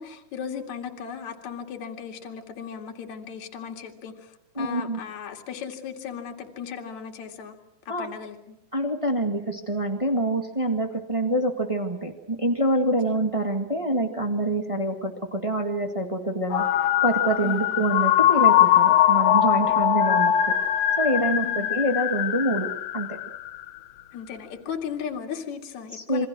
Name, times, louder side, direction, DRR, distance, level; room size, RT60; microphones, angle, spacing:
voice 1, 0.0-4.3 4.6-7.6 7.9-8.6 13.1-13.3 17.4-17.8 19.7-19.9 21.4-21.8 24.1-26.3, left 7 dB, 55° left, 2 dB, 3.4 m, -36 dB
voice 2, 4.5-5.0 7.9-8.1 8.7-20.3 21.0-22.7 22.9-23.1 25.9-26.3, right 1 dB, 20° right, 4 dB, 0.9 m, -26 dB
sound 1, 16.5-23.8, left 11 dB, 80° left, 2.8 m, -21 dB
27.5 x 23.5 x 6.2 m, 0.82 s
omnidirectional pair, 4.1 m